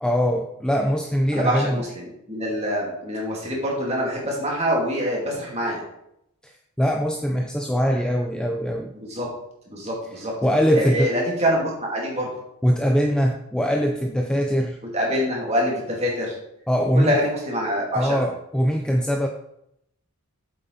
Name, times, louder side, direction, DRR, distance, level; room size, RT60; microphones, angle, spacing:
voice 1, 0.0-1.8 6.4-8.9 10.4-11.2 12.6-14.8 16.7-17.2 17.9-19.3, equal, 5° left, 2 dB, 0.5 m, -22 dB
voice 2, 1.3-5.8 8.9-9.3 9.7-10.3 10.7-12.3 14.9-16.3 16.9-18.2, equal, 30° right, -2 dB, 2.6 m, -25 dB
8.1 x 7.6 x 4.0 m, 0.78 s
head